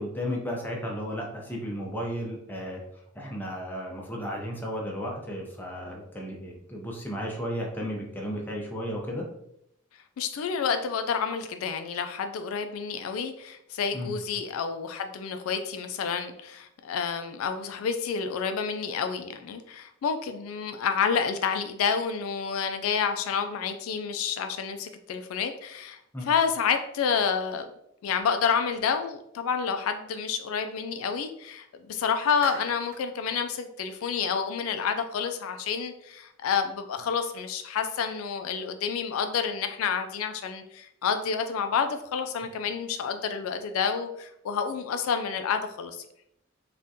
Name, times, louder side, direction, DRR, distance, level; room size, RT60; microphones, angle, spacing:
voice 1, 0.0-2.8 3.1-9.2 13.9-14.1 26.1-26.3 42.5-42.6, equal, 10° left, -2 dB, 0.5 m, -34 dB
voice 2, 10.2-26.0 26.3-27.7 28.0-46.0, left 6 dB, 80° left, 8 dB, 0.3 m, -29 dB
Clapping, 32.4-33.1, right 7 dB, 80° right, 0.3 m, -41 dB
3.5 x 2.4 x 2.6 m, 0.77 s
head